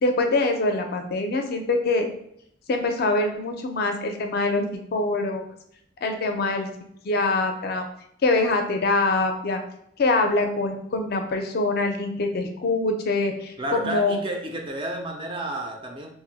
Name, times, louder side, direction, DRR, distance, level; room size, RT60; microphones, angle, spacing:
voice 1, 0.0-2.1 2.7-5.4 6.0-6.7 7.0-7.8 8.2-9.6 10.0-14.2, left 2 dB, 50° left, 5 dB, 0.4 m, -24 dB
voice 2, 13.6-16.1, right 1 dB, 25° right, 2 dB, 0.3 m, -31 dB
2.5 x 2.0 x 3.9 m, 0.72 s
head